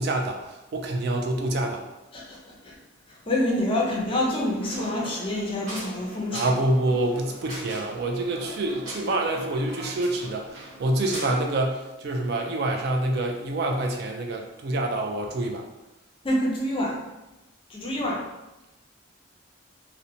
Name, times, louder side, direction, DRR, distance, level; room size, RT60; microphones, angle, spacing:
voice 1, 0.0-1.8 6.3-15.7, right 1 dB, 50° right, 2 dB, 0.3 m, -27 dB
voice 2, 2.1-2.8 3.1-6.5 16.2-17.0 17.7-18.3, left 1 dB, 25° left, -3 dB, 0.4 m, -27 dB
sound 1, 3.8-11.4, right 1 dB, 75° right, 1.0 m, -40 dB
2.7 x 2.1 x 2.6 m, 1.0 s
head